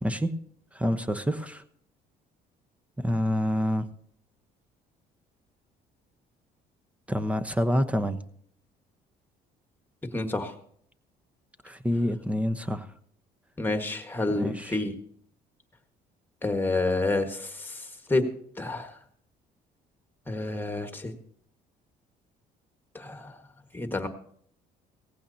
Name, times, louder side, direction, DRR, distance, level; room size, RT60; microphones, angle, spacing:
voice 1, 0.0-0.3 0.7-1.6 3.0-3.8 7.1-8.2 11.6-12.9 14.3-14.8, equal, 10° right, 11 dB, 0.9 m, -27 dB
voice 2, 10.1-10.5 13.6-14.9 16.4-18.2 18.6-18.9 20.3-21.1 22.9-23.3 23.7-24.1, left 2 dB, 10° left, 6 dB, 1.6 m, -29 dB
17.5 x 15.0 x 2.8 m, 0.64 s
cardioid pair, 110°, 17 cm